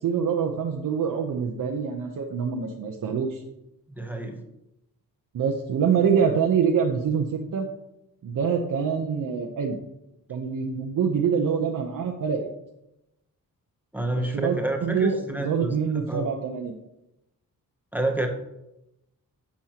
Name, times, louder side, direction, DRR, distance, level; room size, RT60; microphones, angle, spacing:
voice 1, 0.0-3.4 5.3-7.7 8.2-9.8 10.3-12.5 14.1-16.7, right 6 dB, 60° right, 1 dB, 0.8 m, -25 dB
voice 2, 3.9-4.4 13.9-16.3 17.9-18.3, right 2 dB, 5° right, 3 dB, 0.8 m, -29 dB
10.5 x 7.2 x 2.9 m, 0.89 s
wide cardioid pair, 180°, 36 cm